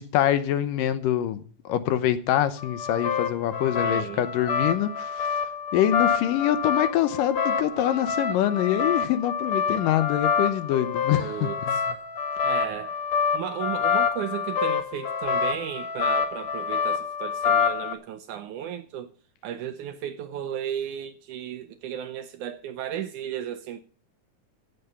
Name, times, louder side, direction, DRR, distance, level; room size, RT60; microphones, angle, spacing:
voice 1, 0.0-5.3 5.7-11.5, left 11 dB, 75° left, 2.4 m, -25 dB
sound 1, 2.6-17.9, left 6 dB, 55° left, 2.5 m, -27 dB
voice 2, 3.8-4.2 11.2-11.8 12.4-13.0 13.3-19.1 19.4-23.8, right 10 dB, 75° right, 1.9 m, -34 dB
15.5 x 7.5 x 6.8 m
omnidirectional pair, 4.2 m